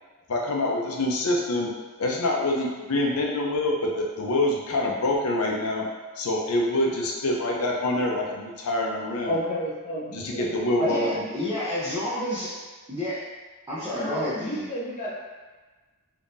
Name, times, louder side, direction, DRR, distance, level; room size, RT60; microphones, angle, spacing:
voice 1, 0.3-1.7 2.0-5.9 6.2-9.3 10.1-11.2, left 1 dB, 75° left, -1 dB, 0.6 m, -26 dB
voice 2, 9.2-11.5 13.9-15.1, equal, 30° left, -5 dB, 0.8 m, -31 dB
voice 3, 10.8-12.5 12.9-13.2 13.7-14.7, left 1 dB, 15° right, -10 dB, 0.6 m, -30 dB
3.7 x 2.8 x 2.6 m, 1.3 s
head